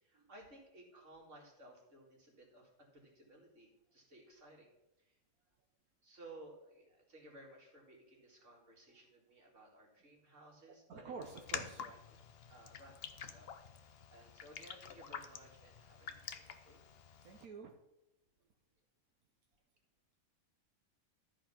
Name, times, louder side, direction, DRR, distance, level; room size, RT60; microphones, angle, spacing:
voice 1, 0.0-4.7 6.0-11.1 11.8-12.0 12.5-13.5 13.7-16.8, right 1 dB, 55° right, -1 dB, 2.7 m, -58 dB
voice 2, 10.7-11.9 17.2-17.7, right 5 dB, 85° right, 2 dB, 1.4 m, -49 dB
Raindrop, 11.2-17.5, left 7 dB, 50° left, 0.8 m, -48 dB
13.0 x 4.9 x 5.8 m, 0.93 s
omnidirectional pair, 1.5 m